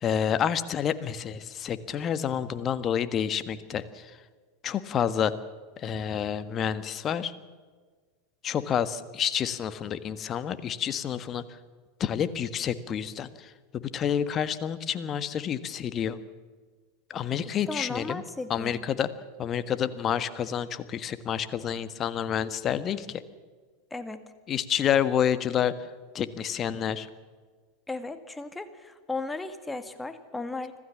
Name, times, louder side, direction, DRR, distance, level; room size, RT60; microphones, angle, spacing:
voice 1, 0.0-3.8 4.6-5.3 5.8-7.3 8.4-11.4 12.0-13.3 13.7-16.2 17.1-18.2 18.5-19.1 19.4-23.2 24.5-25.7 26.1-27.1, left 9 dB, 35° left, 13 dB, 1.5 m, -28 dB
voice 2, 17.4-18.7 23.9-24.2 27.9-30.7, left 3 dB, 10° left, 10 dB, 2.0 m, -36 dB
25.5 x 16.5 x 7.4 m, 1.5 s
figure-of-eight pair, 85°, 0 cm